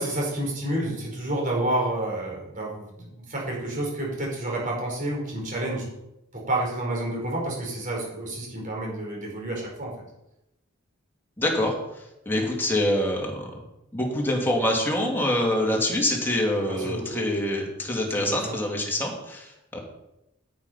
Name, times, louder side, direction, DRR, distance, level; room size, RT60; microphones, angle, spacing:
voice 1, 0.0-5.9 6.3-9.9 16.6-17.2 18.3-18.6, right 1 dB, 40° right, -2 dB, 4.7 m, -29 dB
voice 2, 11.4-11.7 12.3-13.5 13.9-19.8, left 1 dB, 10° left, -1 dB, 2.5 m, -25 dB
9.4 x 9.2 x 5.7 m, 0.88 s
head